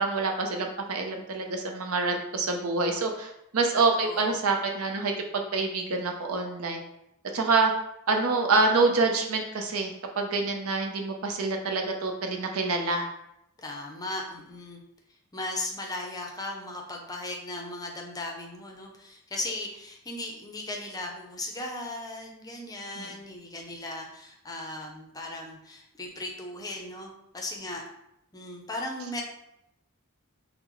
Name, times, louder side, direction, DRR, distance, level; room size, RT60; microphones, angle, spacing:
voice 1, 0.0-6.8 7.3-7.7 8.1-13.1 23.0-23.1, right 3 dB, 70° right, 3 dB, 0.6 m, -26 dB
voice 2, 4.0-4.4 13.6-14.8 15.3-27.8 28.3-29.2, left 2 dB, 15° left, 1 dB, 0.5 m, -37 dB
5.8 x 2.1 x 3.0 m, 0.80 s
head